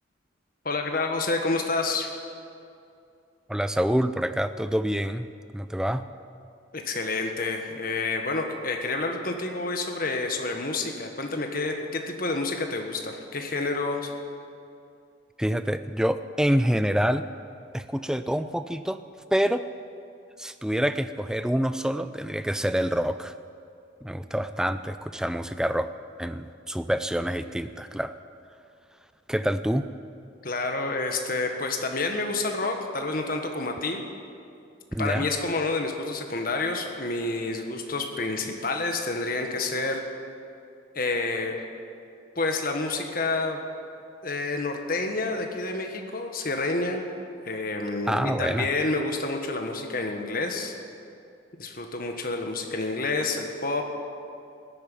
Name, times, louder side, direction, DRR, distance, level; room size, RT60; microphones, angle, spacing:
voice 1, 0.6-2.1 6.7-14.1 30.4-34.0 35.0-40.0 40.9-41.6 42.4-43.6 44.2-47.0 47.4-50.7 51.6-53.8, left 3 dB, 45° left, 4 dB, 1.5 m, -29 dB
voice 2, 3.5-5.3 5.5-6.0 15.4-17.3 17.7-19.0 19.3-19.7 20.4-23.3 24.0-25.9 26.2-28.2 29.3-29.9 34.9-35.3 48.1-48.7, equal, 5° right, 11 dB, 0.4 m, -26 dB
15.0 x 9.1 x 10.0 m, 2.5 s
head